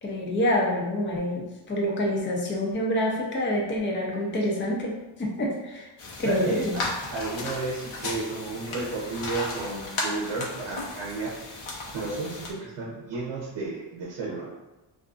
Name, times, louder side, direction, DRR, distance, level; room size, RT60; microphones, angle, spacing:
voice 1, 0.0-4.9 5.2-5.9 6.2-6.7, left 1 dB, 25° left, -2 dB, 0.5 m, -27 dB
sound 1, 6.0-12.5, left 2 dB, 85° left, 0.7 m, -35 dB
voice 2, 6.2-6.8 7.1-11.3 11.9-14.5, right 3 dB, 70° right, -5 dB, 0.7 m, -32 dB
2.5 x 2.4 x 2.4 m, 1.0 s
wide cardioid pair, 115°, 47 cm